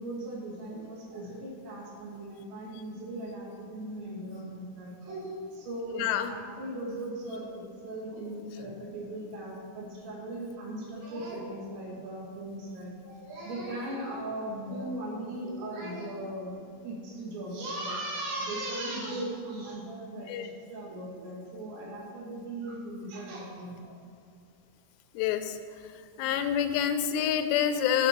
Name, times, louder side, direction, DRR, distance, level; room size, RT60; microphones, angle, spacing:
voice 1, 0.0-16.6 16.8-24.0 26.2-26.3, right 1 dB, 85° right, -3 dB, 4.4 m, -38 dB
voice 2, 6.0-6.3 20.3-20.5 25.1-25.6 26.2-28.1, left 9 dB, 85° left, 7 dB, 2.8 m, -27 dB
12.5 x 6.6 x 6.0 m, 2.4 s
omnidirectional pair, 5.1 m